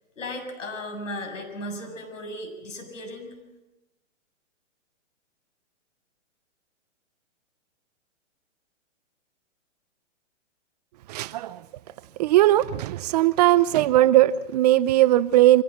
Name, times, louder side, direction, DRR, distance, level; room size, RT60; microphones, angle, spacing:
voice 1, 0.2-3.3, left 1 dB, 85° left, 7.2 m, -36 dB
voice 2, 11.1-11.6 12.2-15.6, right 14 dB, 35° right, 0.6 m, -19 dB
25.0 x 16.0 x 7.3 m
hypercardioid pair, 140°, 37 cm